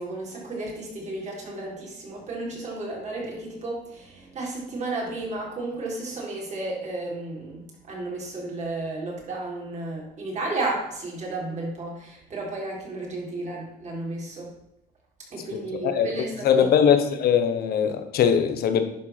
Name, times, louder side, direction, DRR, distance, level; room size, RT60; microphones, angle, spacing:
voice 1, 0.0-7.6 7.9-14.5 15.3-16.7, right 2 dB, 45° right, -2 dB, 3.6 m, -33 dB
voice 2, 16.4-18.8, left 8 dB, 65° left, 8 dB, 1.2 m, -20 dB
10.5 x 4.8 x 5.8 m, 0.85 s
cardioid pair, 110°, 17 cm